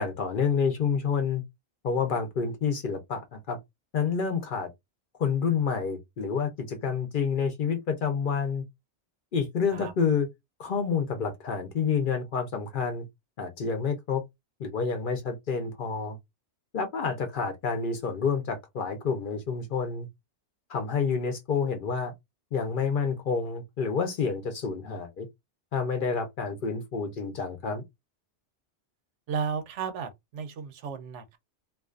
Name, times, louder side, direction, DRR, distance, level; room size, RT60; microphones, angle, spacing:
voice 1, 0.0-1.4 1.8-3.6 3.9-4.7 5.2-8.6 9.3-10.3 10.6-13.1 13.4-14.2 14.6-16.2 16.7-20.1 20.7-22.1 22.5-25.3 25.7-27.8, left 5 dB, 55° left, 0.6 m, -28 dB
voice 2, 29.3-31.4, right 6 dB, 80° right, 0.9 m, -34 dB
2.4 x 2.3 x 2.3 m
omnidirectional pair, 1.2 m